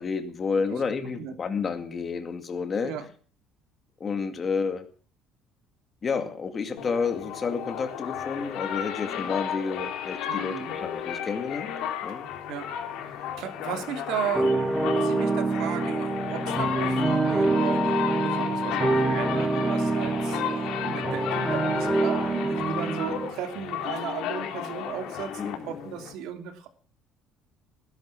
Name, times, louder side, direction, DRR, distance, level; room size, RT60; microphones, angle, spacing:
voice 1, 0.0-2.9 4.0-4.8 6.0-11.7 12.0-12.3 25.4-25.7, left 5 dB, 25° left, 7 dB, 2.3 m, -30 dB
sound 1, 6.8-26.1, left 9 dB, 60° left, 3.9 m, -33 dB
voice 2, 10.3-10.8 12.1-12.2 12.5-12.7 13.0-14.5 14.9-26.7, right 9 dB, 65° right, 7 dB, 3.0 m, -36 dB
sound 2, 14.3-23.3, right 3 dB, 5° right, 1.7 m, -26 dB
19.0 x 11.5 x 6.0 m, 0.42 s
cardioid pair, 175°, 0 cm